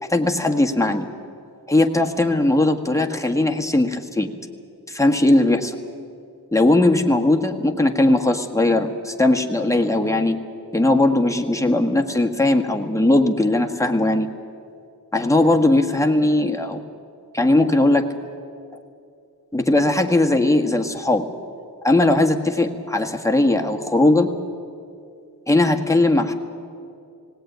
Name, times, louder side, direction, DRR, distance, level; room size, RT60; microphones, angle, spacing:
voice 1, 0.1-1.1 1.7-4.3 4.9-5.8 6.5-10.4 10.7-14.3 15.1-16.8 17.3-18.1 19.5-21.2 21.8-24.3 25.5-26.3, left 2 dB, 10° left, 3 dB, 1.4 m, -19 dB
18.5 x 18.5 x 9.2 m, 2.5 s
wide cardioid pair, 70°, 39 cm